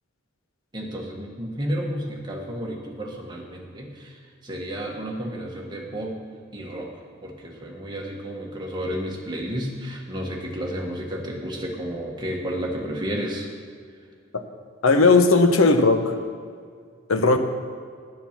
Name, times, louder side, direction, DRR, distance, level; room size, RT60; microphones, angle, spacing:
voice 1, 0.7-6.2 6.5-6.9 7.2-13.5, equal, 20° right, -1 dB, 1.4 m, -31 dB
voice 2, 14.8-16.1 17.1-17.4, left 3 dB, 80° left, 7 dB, 0.8 m, -17 dB
9.5 x 8.6 x 5.9 m, 2.1 s
head